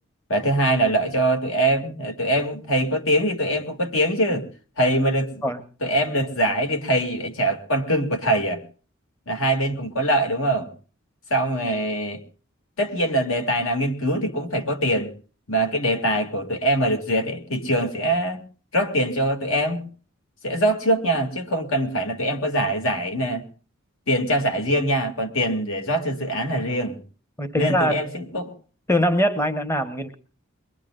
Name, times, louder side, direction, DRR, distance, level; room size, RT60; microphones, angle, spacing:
voice 1, 0.3-4.5 4.8-5.4 5.8-8.6 9.3-10.7 11.3-12.2 12.8-15.1 15.5-18.4 18.7-19.9 20.4-23.5 24.1-27.0 27.6-28.5, right 1 dB, 70° left, 2.3 m, -23 dB
voice 2, 27.4-28.0 28.9-30.2, equal, 10° left, 0.8 m, -22 dB
22.5 x 22.0 x 2.5 m
head